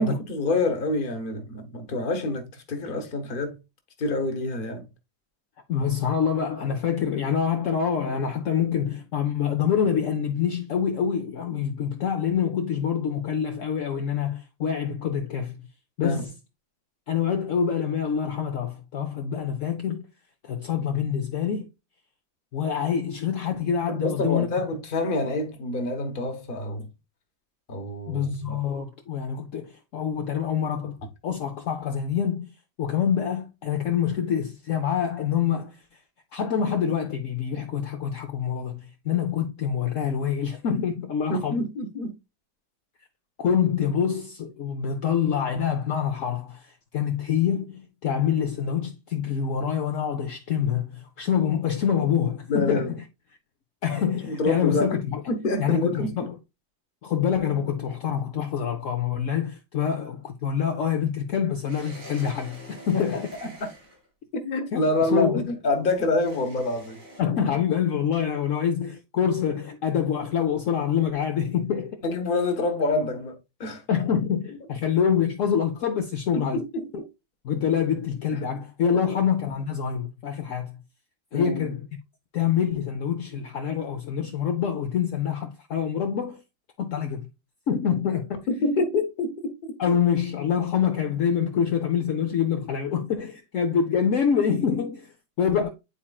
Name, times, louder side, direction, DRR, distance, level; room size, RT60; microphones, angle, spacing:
voice 1, 0.0-3.6 4.0-4.8 16.0-16.2 23.9-26.9 27.7-28.6 41.3-42.1 52.5-52.9 54.3-55.0 55.3-56.1 62.9-63.7 64.3-67.0 71.4-71.5 72.0-73.8 76.3-77.1 78.9-79.1 81.3-81.6 88.5-89.5, left 2 dB, 35° left, 1.0 m, -27 dB
voice 2, 5.7-15.7 16.0-16.3 17.1-20.1 20.4-21.7 22.5-24.5 28.1-31.0 31.2-32.5 32.8-36.0 36.3-41.6 43.4-52.9 53.8-55.2 55.6-56.4 57.0-63.3 64.7-64.8 65.1-65.5 67.2-72.0 73.9-76.6 77.4-80.8 81.3-81.9 82.3-86.4 86.8-87.3 87.7-88.4 89.8-95.7, left 8 dB, 65° left, 0.8 m, -26 dB
sound 1, 61.7-64.1 66.2-67.2, equal, 85° right, 4.4 m, -45 dB
9.7 x 4.3 x 2.3 m
omnidirectional pair, 2.1 m